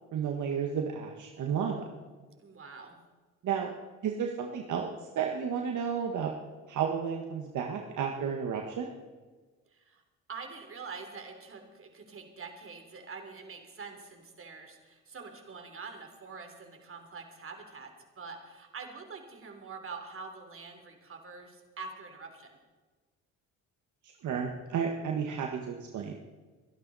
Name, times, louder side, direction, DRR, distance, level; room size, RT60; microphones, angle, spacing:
voice 1, 0.1-1.9 3.4-3.7 4.0-4.9 5.1-6.3 6.7-8.9 24.2-26.2, right 7 dB, 65° right, 2 dB, 1.6 m, -32 dB
voice 2, 2.4-3.0 9.7-10.0 10.3-22.6, right 4 dB, 40° right, 5 dB, 3.3 m, -45 dB
23.5 x 11.5 x 4.2 m, 1.3 s
supercardioid pair, 70°, 32 cm